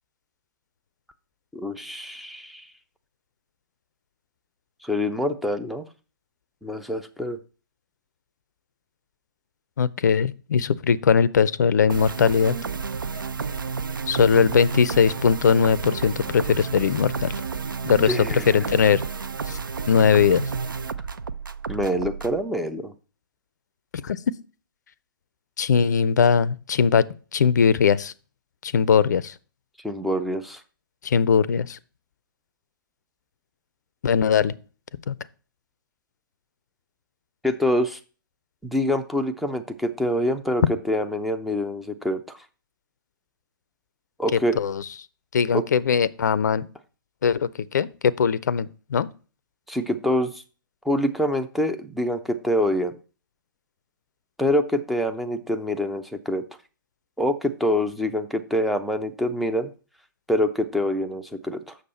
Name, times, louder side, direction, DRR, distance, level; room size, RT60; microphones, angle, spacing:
voice 1, 1.5-2.7 4.8-5.8 6.6-7.4 18.1-18.6 21.7-22.9 29.8-30.6 37.4-38.0 38.6-42.4 44.2-44.6 45.5-45.6 49.7-50.4 50.8-52.9 54.4-56.4 57.2-59.7 60.3-61.8, left 1 dB, ahead, 0.5 m, -25 dB
voice 2, 9.8-12.6 14.1-17.3 17.8-18.2 18.5-19.0 19.5-19.6 19.9-20.4 24.0-24.2 25.6-27.0 27.3-28.1 28.6-29.3 31.0-31.8 34.0-34.5 35.1-35.2 44.3-44.8 45.3-46.7 47.2-49.1, left 6 dB, 55° left, 0.5 m, -20 dB
sound 1, 11.9-22.4, right 5 dB, 70° right, 0.6 m, -31 dB
7.3 x 6.4 x 4.2 m
figure-of-eight pair, 120°, 12 cm